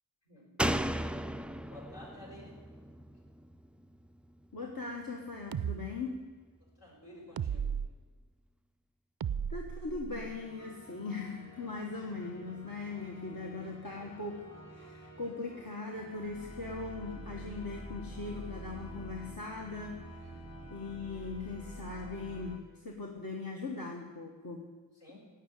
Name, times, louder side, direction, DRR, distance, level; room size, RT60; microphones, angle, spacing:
Slam, 0.6-4.1 4.4-4.5, right 1 dB, 5° right, 0.3 m, -35 dB
voice 1, 1.7-2.6 6.8-7.7 20.2-20.7 25.0-25.2, left 1 dB, 70° left, -5 dB, 5.5 m, -52 dB
voice 2, 4.5-6.1 9.5-14.4 14.7-20.2 20.7-24.7, left 3 dB, 50° left, 0 dB, 1.4 m, -40 dB
sound 1, 5.5-5.8 7.4-7.9 9.2-10.4, right 8 dB, 60° right, 0.5 m, -35 dB
sound 2, 10.1-22.6, equal, 35° left, 3.3 m, -48 dB
16.5 x 5.7 x 9.8 m, 1.4 s
wide cardioid pair, 50°, 42 cm